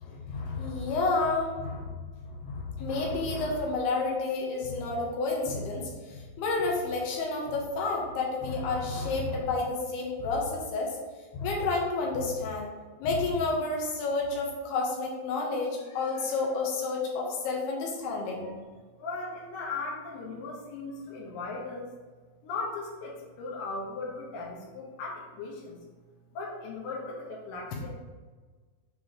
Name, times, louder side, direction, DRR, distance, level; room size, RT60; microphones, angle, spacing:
voice 1, 0.0-1.9 2.2-5.8 6.1-10.9 11.3-12.7 13.0-18.6, left 3 dB, 85° left, -2 dB, 3.1 m, -30 dB
voice 2, 19.0-21.9 22.4-25.8 26.3-27.9, left 3 dB, 65° left, -3 dB, 2.7 m, -37 dB
7.3 x 3.0 x 5.0 m, 1.4 s
omnidirectional pair, 4.5 m